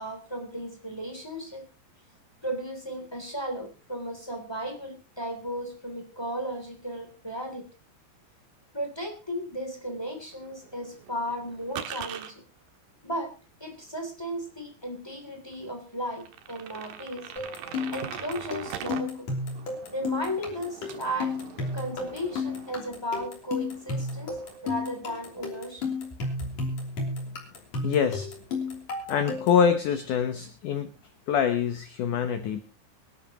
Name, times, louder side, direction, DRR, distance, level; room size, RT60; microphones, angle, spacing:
voice 1, 0.0-1.7 2.4-7.6 8.7-12.4 13.0-13.3 13.6-17.3 17.9-19.3 19.9-21.3 21.7-25.8, equal, 5° left, 3 dB, 2.4 m, -35 dB
sound 1, 10.3-12.3 13.9-14.0 14.5-14.6 15.1-15.2 15.5-15.6 16.1-19.0 19.4-23.2 23.5-24.6, right 9 dB, 65° right, 2.6 m, -42 dB
sound 2, 17.4-29.7, left 3 dB, 40° left, 4.1 m, -33 dB
voice 2, 27.8-28.3 29.1-30.9 31.3-32.6, left 7 dB, 70° left, 8 dB, 2.0 m, -25 dB
24.5 x 11.5 x 3.0 m, 0.34 s
omnidirectional pair, 5.0 m